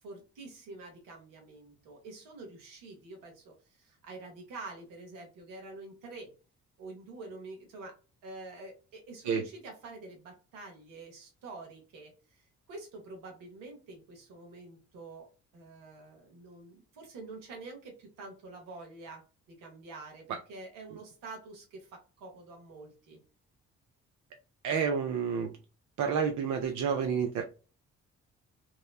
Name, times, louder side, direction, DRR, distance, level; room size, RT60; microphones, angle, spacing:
voice 1, 0.0-6.3 6.8-23.2, right 3 dB, 85° right, 2 dB, 1.0 m, -47 dB
voice 2, 24.6-25.5 26.0-27.4, right 6 dB, 65° right, 5 dB, 0.5 m, -29 dB
2.9 x 2.0 x 2.3 m, 0.34 s
supercardioid pair, 55°, 32 cm